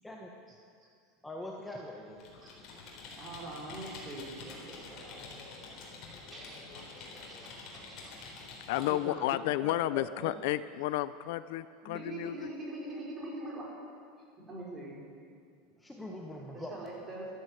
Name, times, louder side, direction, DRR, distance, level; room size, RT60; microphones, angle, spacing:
voice 1, 1.2-2.2 8.7-10.4 15.8-16.9, left 1 dB, 5° left, -1 dB, 1.2 m, -43 dB
Computer keyboard, 2.1-9.0, left 3 dB, 45° left, 4.1 m, -47 dB
voice 2, 3.2-5.3 6.3-8.0 11.8-13.7 14.4-15.0 16.5-17.4, right 2 dB, 25° right, -4 dB, 4.7 m, -43 dB
voice 3, 8.7-12.5, left 14 dB, 70° left, 15 dB, 0.4 m, -32 dB
13.0 x 11.5 x 7.8 m, 2.2 s
supercardioid pair, 145°, 0 cm